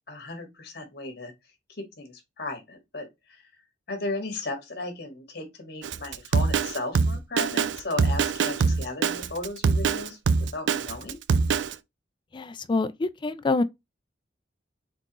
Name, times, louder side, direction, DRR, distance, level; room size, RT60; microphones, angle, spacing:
voice 1, 0.1-1.3 1.8-3.1 3.9-11.2, left 2 dB, 60° left, 1.6 m, -35 dB
Drum kit, 5.8-11.7, right 5 dB, 70° right, 0.4 m, -23 dB
voice 2, 12.3-13.6, left 3 dB, 25° left, 0.3 m, -26 dB
4.5 x 3.8 x 3.0 m
head